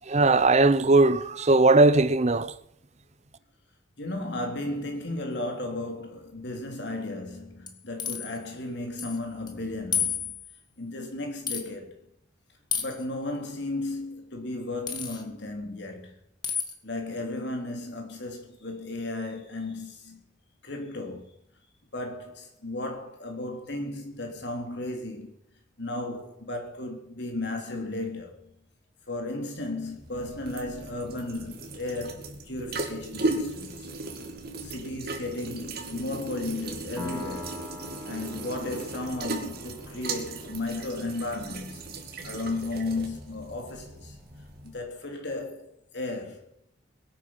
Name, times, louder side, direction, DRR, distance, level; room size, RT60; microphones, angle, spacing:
voice 1, 0.1-2.5, right 2 dB, 35° right, 0.8 m, -19 dB
voice 2, 4.0-10.3 10.8-11.9 12.8-16.1 16.8-20.2 20.6-21.3 21.9-25.3 25.8-28.5 29.1-33.9 34.6-37.6 38.0-41.8 42.2-44.1 44.6-45.7 45.9-46.5, left 2 dB, 60° left, 3.3 m, -34 dB
sound 1, 7.7-8.4 9.0-9.2 9.5-9.6 9.9-10.6 11.5-11.6 12.7-13.0 14.9-15.2 16.4-16.7, left 7 dB, 25° left, 1.7 m, -30 dB
sound 2, 29.8-44.9, right 2 dB, 55° right, 2.4 m, -37 dB
Piano, 37.0-44.4, left 1 dB, 5° left, 4.8 m, -45 dB
22.0 x 9.2 x 5.6 m
head